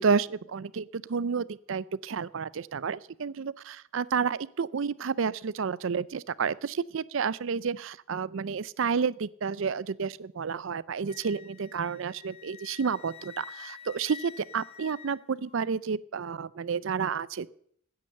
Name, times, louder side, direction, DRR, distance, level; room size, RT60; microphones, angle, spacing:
voice 1, 0.0-17.5, right 5 dB, 70° right, 20 dB, 0.5 m, -30 dB
Wind instrument woodwind instrument, 11.1-15.7, left 8 dB, 30° left, 0.7 m, -48 dB
14.0 x 9.6 x 7.8 m, 0.65 s
head